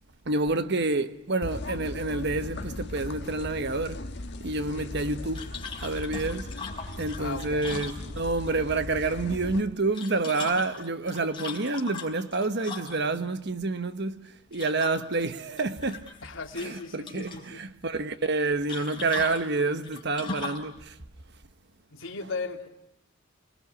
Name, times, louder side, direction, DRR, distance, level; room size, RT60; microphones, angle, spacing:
voice 1, 0.2-4.0 4.4-5.4 5.8-6.5 7.0-16.1 16.6-21.0, right 3 dB, 55° right, 1.2 m, -28 dB
sound 1, 1.4-9.6, left 1 dB, 55° left, 1.4 m, -38 dB
sound 2, 5.3-8.5 9.8-13.2 14.5-15.2 15.6-16.3 16.5-17.4 18.7-20.7, left 4 dB, 25° left, 4.3 m, -39 dB
voice 2, 7.2-7.8 16.2-17.6 21.9-22.7, left 3 dB, 70° left, 3.2 m, -37 dB
29.0 x 20.5 x 9.7 m
head